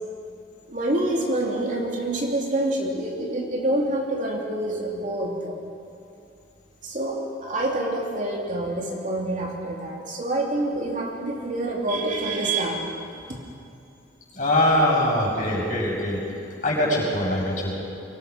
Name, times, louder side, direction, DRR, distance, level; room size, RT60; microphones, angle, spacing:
voice 1, 0.7-5.6 6.8-12.9, right 1 dB, 45° right, -1 dB, 2.9 m, -27 dB
voice 2, 14.3-16.2 16.6-17.7, left 1 dB, 45° left, -3 dB, 6.6 m, -22 dB
23.5 x 20.0 x 6.0 m, 2.6 s
head